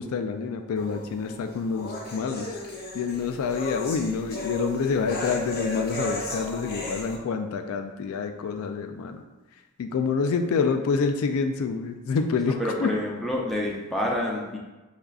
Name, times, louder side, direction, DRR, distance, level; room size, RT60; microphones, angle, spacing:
voice 1, 0.0-2.5 2.9-9.2 9.8-12.9, left 5 dB, 75° left, 7 dB, 0.3 m, -27 dB
sound 1, 0.8-7.2, left 1 dB, 45° left, 0.7 m, -35 dB
voice 2, 12.6-14.6, left 1 dB, ahead, -3 dB, 0.5 m, -28 dB
6.6 x 2.4 x 2.3 m, 1.1 s
head